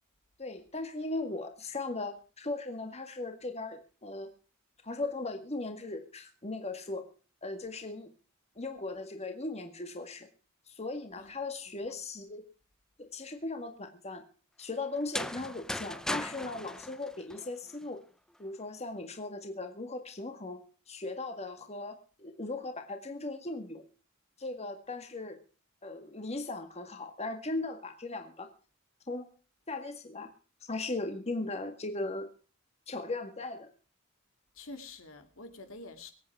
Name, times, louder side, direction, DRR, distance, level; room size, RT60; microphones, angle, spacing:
voice 1, 0.4-4.3 4.8-7.1 7.4-8.1 8.6-10.3 10.7-12.4 13.0-14.2 14.6-18.0 18.4-20.6 20.9-23.8 24.4-25.4 25.8-28.5 29.1-29.3 29.7-30.3 30.7-32.3 32.9-33.7, left 2 dB, 30° left, 6 dB, 1.9 m, -38 dB
sound 1, 15.0-17.8, left 1 dB, 5° left, 0.6 m, -38 dB
voice 2, 34.5-36.1, left 2 dB, 75° left, 6 dB, 2.5 m, -47 dB
23.5 x 8.8 x 4.8 m, 0.38 s
head